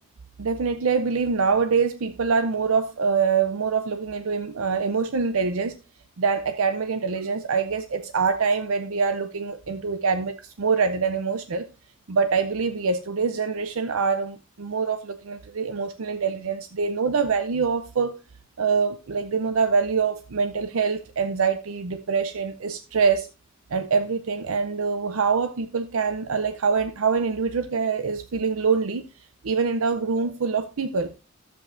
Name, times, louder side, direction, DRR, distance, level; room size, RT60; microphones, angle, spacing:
voice 1, 0.4-5.7 6.2-11.7 12.1-18.2 18.6-23.3 23.7-29.0 29.4-31.1, right 5 dB, 80° right, 0.6 m, -24 dB
12.5 x 7.7 x 2.6 m
head